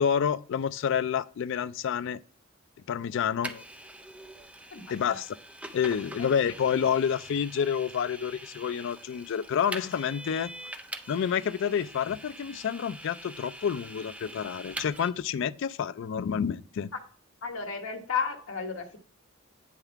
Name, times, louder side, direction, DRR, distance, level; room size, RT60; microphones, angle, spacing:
voice 1, 0.0-2.2 2.9-3.6 4.9-5.2 5.7-10.5 11.1-16.9, left 7 dB, 65° left, 0.3 m, -28 dB
Vehicle, 3.4-15.1, right 1 dB, 5° right, 0.4 m, -44 dB
voice 2, 4.7-5.2 6.2-6.3 17.4-19.0, left 6 dB, 80° left, 1.2 m, -33 dB
8.9 x 3.6 x 4.5 m
head